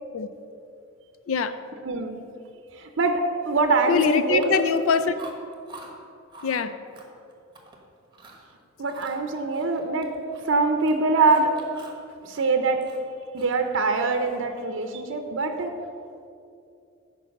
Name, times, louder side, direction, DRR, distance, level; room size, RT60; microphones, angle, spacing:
voice 1, 1.8-2.2 2.7-4.5 8.8-10.1 10.4-11.5 12.2-12.9 13.3-15.7, right 3 dB, 65° right, 6 dB, 0.6 m, -23 dB
voice 2, 3.9-5.1 6.4-6.8, left 5 dB, 80° left, 12 dB, 0.5 m, -23 dB
Chewing mastication, 4.3-4.9 5.2-5.9 6.3-6.6 6.9-7.8 8.1-8.4 8.8-10.5 10.7-12.0 12.3-13.7, right 2 dB, 25° right, 1.2 m, -46 dB
10.5 x 4.7 x 6.4 m, 2.5 s
head